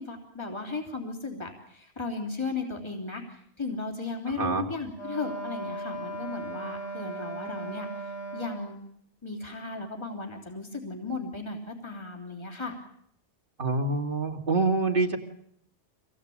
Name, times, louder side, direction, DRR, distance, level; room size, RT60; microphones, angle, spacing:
voice 1, 0.0-8.8 9.2-12.8, left 3 dB, 20° left, 1 dB, 3.5 m, -36 dB
Wind instrument woodwind instrument, 4.9-8.8, right 2 dB, 55° left, 6.0 m, -37 dB
voice 2, 13.6-15.2, right 3 dB, 50° right, 2 dB, 2.6 m, -26 dB
26.0 x 18.0 x 8.7 m, 0.71 s
omnidirectional pair, 1.2 m